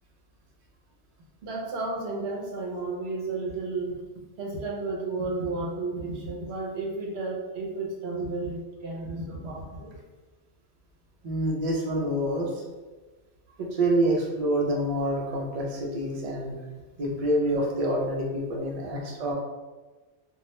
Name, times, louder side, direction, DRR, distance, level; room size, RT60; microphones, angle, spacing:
voice 1, 1.4-4.0 4.4-10.0, right 3 dB, 75° right, 0 dB, 0.8 m, -32 dB
voice 2, 11.2-12.5 13.6-16.5 17.0-19.3, right 1 dB, 55° right, -2 dB, 0.4 m, -27 dB
2.3 x 2.1 x 2.8 m, 1.3 s
omnidirectional pair, 1.1 m